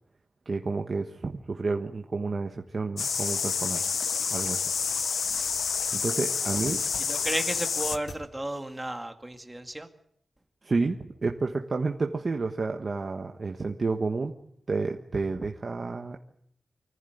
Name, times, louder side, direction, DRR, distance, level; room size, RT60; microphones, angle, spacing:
voice 1, 0.4-3.8 4.3-4.6 5.9-6.8 10.6-14.3 14.7-16.2, right 3 dB, 40° right, 3 dB, 1.3 m, -30 dB
sound 1, 3.0-8.0, left 6 dB, 90° left, 1.0 m, -29 dB
sound 2, 3.2-8.2, left 3 dB, 70° left, 2.7 m, -49 dB
voice 2, 7.0-9.9, right 1 dB, 10° right, 6 dB, 2.1 m, -33 dB
25.0 x 15.0 x 9.3 m, 0.70 s
wide cardioid pair, 135°, 0 cm